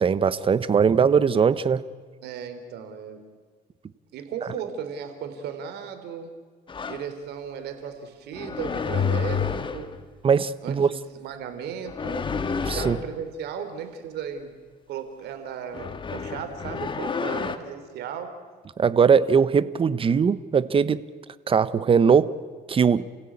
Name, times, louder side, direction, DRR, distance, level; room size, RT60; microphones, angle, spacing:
voice 1, 0.0-1.8 10.2-10.9 12.6-13.0 18.8-21.0 21.5-22.3 22.7-23.0, right 6 dB, 30° right, 15 dB, 1.0 m, -20 dB
voice 2, 2.2-3.2 4.1-6.4 6.9-9.9 10.6-12.3 12.6-14.6 14.9-18.3, right 7 dB, 75° right, 8 dB, 3.4 m, -36 dB
sound 1, 6.7-7.1 8.4-10.0 11.9-13.1 15.7-17.6, left 5 dB, 30° left, 1.5 m, -29 dB
29.5 x 16.0 x 8.7 m, 1.5 s
cardioid pair, 110°, 17 cm